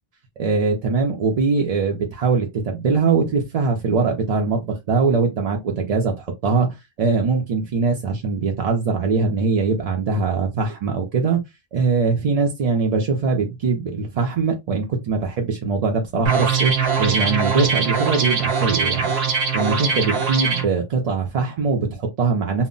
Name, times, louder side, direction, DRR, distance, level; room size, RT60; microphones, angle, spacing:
voice 1, 0.4-6.7 7.0-11.4 11.7-19.1 19.5-22.7, right 4 dB, 50° right, 0.5 m, -22 dB
sound 1, 16.3-20.6, right 5 dB, 85° right, 0.9 m, -21 dB
2.0 x 2.0 x 3.7 m
omnidirectional pair, 1.1 m